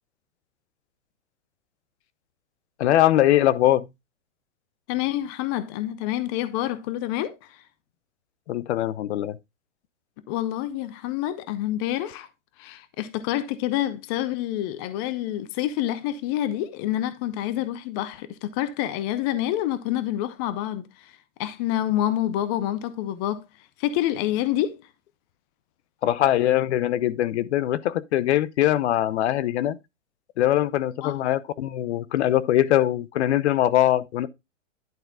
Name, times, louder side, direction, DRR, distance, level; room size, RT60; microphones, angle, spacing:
voice 1, 2.8-3.9 8.5-9.4 26.0-29.8 30.4-34.3, left 13 dB, 60° left, 0.8 m, -22 dB
voice 2, 4.9-7.6 10.3-12.3 12.6-21.1 21.4-23.4 23.8-24.8 31.0-31.2, left 13 dB, 20° left, 0.4 m, -27 dB
11.0 x 4.5 x 3.7 m
hypercardioid pair, 135°, 39 cm